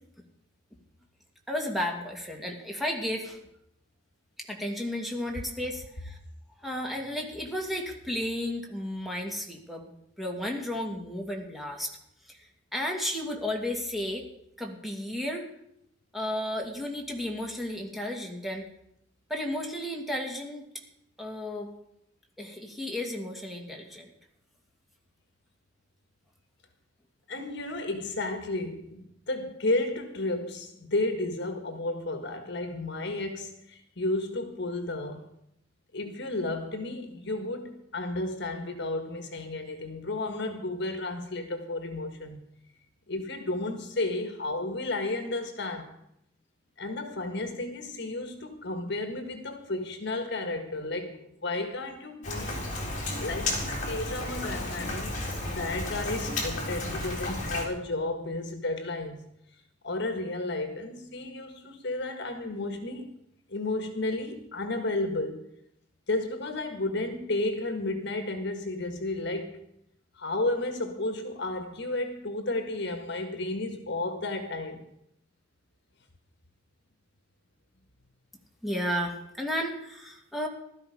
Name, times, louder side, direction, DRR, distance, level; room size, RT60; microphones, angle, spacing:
voice 1, 1.5-3.4 4.5-6.2 6.6-9.9 10.2-11.9 12.3-12.4 12.7-14.3 14.6-15.5 16.1-18.6 19.3-20.6 21.2-21.7 22.4-24.1 78.6-80.5, left 1 dB, ahead, 2.4 m, -33 dB
voice 2, 27.3-35.3 35.9-42.4 43.1-46.0 46.8-52.7 53.2-59.3 59.8-63.1 63.5-65.4 66.1-69.6 70.2-74.9, left 2 dB, 65° left, 1.6 m, -32 dB
Rain, 52.2-57.6, left 2 dB, 40° left, 3.7 m, -33 dB
16.0 x 12.5 x 5.2 m
head